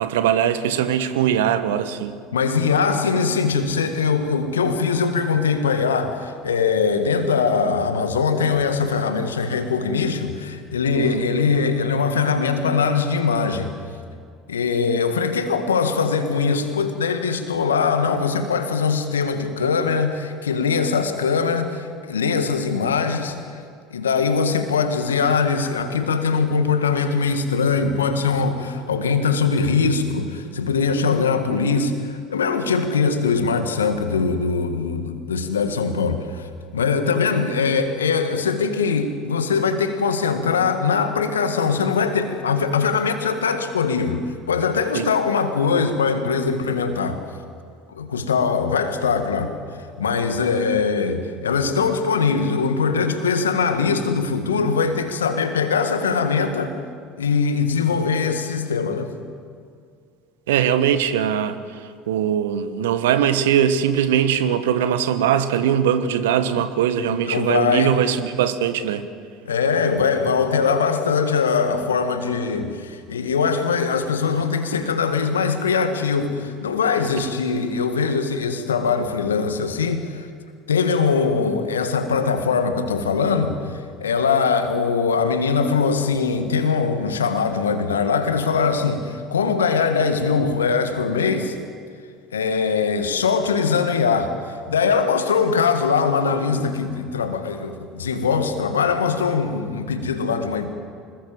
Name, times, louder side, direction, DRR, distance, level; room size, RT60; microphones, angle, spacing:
voice 1, 0.0-2.2 10.9-11.3 44.9-45.1 60.5-61.6 62.1-69.0, right 9 dB, 70° right, 11 dB, 1.4 m, -21 dB
voice 2, 2.3-13.7 14.5-23.6 23.9-36.5 36.7-47.2 47.9-49.5 50.0-56.7 57.2-59.1 66.6-66.7 67.1-67.9 69.5-80.3 80.7-83.5 84.0-91.6 92.3-100.7, left 5 dB, 80° left, 8 dB, 1.9 m, -21 dB
26.0 x 21.0 x 7.4 m, 2.3 s
figure-of-eight pair, 65°, 0 cm